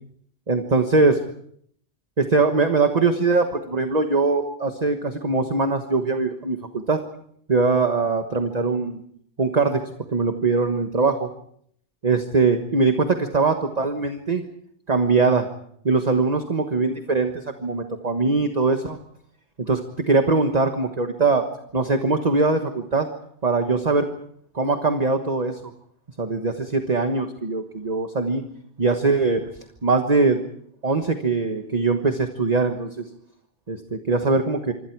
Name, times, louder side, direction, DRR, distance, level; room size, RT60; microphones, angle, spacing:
voice 1, 0.5-1.2 2.2-7.0 7.5-9.0 9.4-11.3 12.0-14.4 14.9-15.5 15.8-19.0 19.6-21.5 21.7-23.1 23.4-24.1 24.5-25.7 26.2-28.4 28.8-29.4 29.8-30.4 30.8-33.0 33.7-34.7, right 3 dB, 35° right, 6 dB, 1.4 m, -21 dB
26.0 x 25.5 x 4.7 m, 0.66 s
omnidirectional pair, 1.2 m